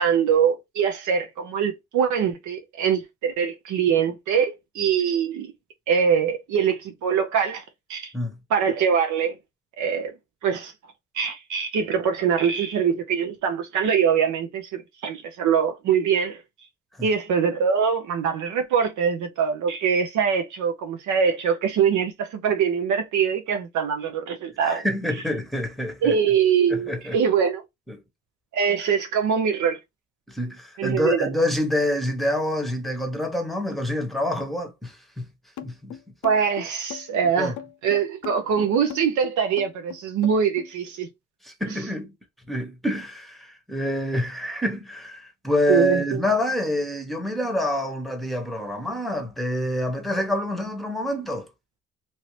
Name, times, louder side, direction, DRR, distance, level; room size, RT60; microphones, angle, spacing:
voice 1, 0.0-5.5 5.9-7.6 7.9-8.1 8.5-9.4 9.8-10.1 10.4-10.7 11.1-16.4 17.0-24.8 26.0-27.6 28.5-29.8 30.8-31.3 36.2-37.5 37.8-41.1 41.6-41.7 45.7-46.2, right 7 dB, 75° right, 0.7 m, -23 dB
voice 2, 24.6-26.2 26.7-27.2 27.9-28.0 30.3-35.3 35.6-36.0 37.4-37.5 41.4-42.1 42.5-51.5, left 1 dB, ahead, 1.0 m, -27 dB
sound 1, 35.6-40.7, left 9 dB, 75° left, 0.5 m, -39 dB
3.0 x 2.8 x 3.1 m
cardioid pair, 90°, 30 cm